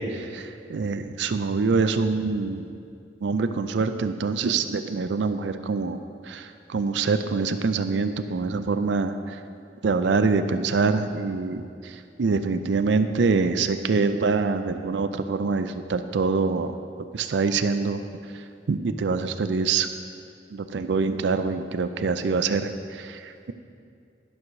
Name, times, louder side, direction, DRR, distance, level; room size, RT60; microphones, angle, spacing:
voice 1, 0.0-2.6 3.2-9.4 9.8-11.9 12.2-16.7 17.1-18.0 18.7-19.9 20.5-23.5, right 4 dB, 75° right, 9 dB, 0.4 m, -25 dB
12.0 x 4.7 x 6.2 m, 2.4 s
head